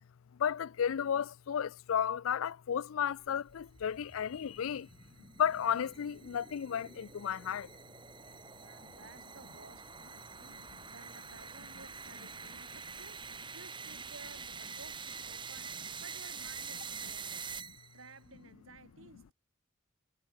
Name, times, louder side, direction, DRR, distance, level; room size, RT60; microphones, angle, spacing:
voice 1, 0.4-4.9 5.4-7.7, left 8 dB, 80° left, 0.4 m, -33 dB
sound 1, 3.3-18.1, right 5 dB, 25° right, 2.0 m, -46 dB
voice 2, 8.5-17.6 17.9-19.3, right 3 dB, 80° right, 6.2 m, -56 dB
head